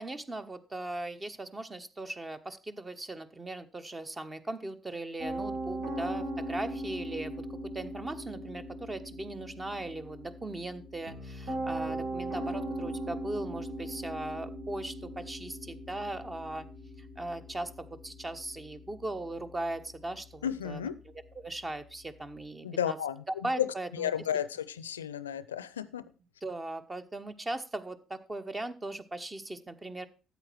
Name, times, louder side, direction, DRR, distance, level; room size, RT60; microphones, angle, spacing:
voice 1, 0.0-16.7 17.0-20.8 21.3-23.0 23.3-24.1 26.4-30.1, right 2 dB, 25° right, 11 dB, 1.2 m, -38 dB
Piano, 5.2-22.3, right 1 dB, 70° right, 4.9 m, -40 dB
voice 2, 20.4-21.0 22.6-23.2 23.6-23.7 24.0-26.0, left 9 dB, 85° left, 17 dB, 0.5 m, -32 dB
13.0 x 8.3 x 4.6 m, 0.34 s
figure-of-eight pair, 50°, 0 cm